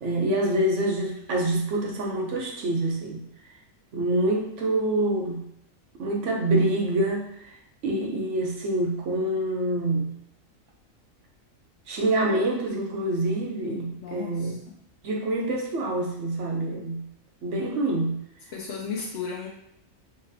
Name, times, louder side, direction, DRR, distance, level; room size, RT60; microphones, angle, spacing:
voice 1, 0.0-3.2 3.9-5.4 6.0-7.3 7.8-10.1 11.9-14.5 15.0-17.0 17.4-18.2, right 1 dB, 65° right, 0 dB, 1.0 m, -26 dB
voice 2, 14.0-14.8 18.5-19.5, left 5 dB, 65° left, -3 dB, 0.8 m, -35 dB
4.0 x 2.8 x 2.7 m, 0.75 s
omnidirectional pair, 1.4 m